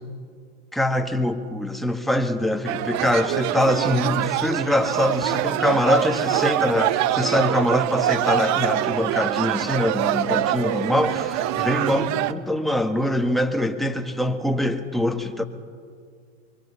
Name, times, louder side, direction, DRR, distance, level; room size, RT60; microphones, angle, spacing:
voice 1, 0.7-15.4, left 1 dB, ahead, 1.5 m, -23 dB
sound 1, 2.7-12.3, right 13 dB, 45° right, 0.9 m, -24 dB
24.0 x 24.0 x 5.6 m
hypercardioid pair, 110°, 40 cm